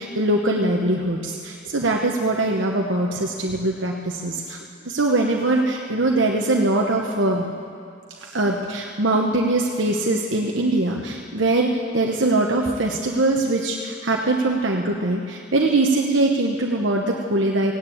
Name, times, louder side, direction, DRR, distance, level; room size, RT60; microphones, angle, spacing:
voice 1, 0.0-4.6 4.8-7.5 8.2-17.7, right 2 dB, 70° right, 0 dB, 1.1 m, -22 dB
17.0 x 9.9 x 8.6 m, 2.5 s
head